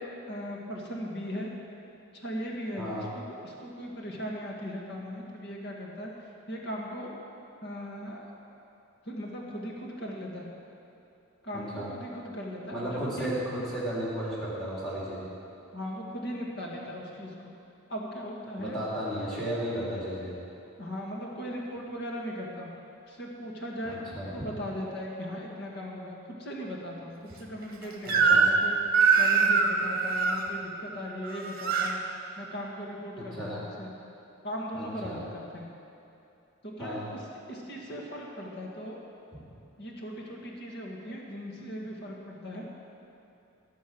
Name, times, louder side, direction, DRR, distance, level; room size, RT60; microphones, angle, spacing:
voice 1, 0.0-1.5 2.1-6.1 6.5-7.1 7.6-8.4 9.1-10.5 11.4-13.3 15.7-17.5 17.9-18.8 20.8-22.7 23.1-24.0 24.3-28.8 29.2-32.0 32.4-33.5 33.8-33.9 34.4-35.7 36.6-37.2 37.5-39.0 39.8-42.7, equal, 50° left, -1 dB, 1.9 m, -38 dB
voice 2, 11.5-11.9 12.7-15.3 18.6-20.3 23.8-24.3 28.0-28.4 33.2-33.6 34.7-35.2 36.8-37.0, equal, ahead, -7 dB, 3.4 m, -34 dB
Crying sobbing / Screech, 28.1-28.6 28.9-30.4 31.2-31.9, right 5 dB, 45° right, 1.1 m, -23 dB
17.0 x 7.2 x 6.2 m, 2.8 s
head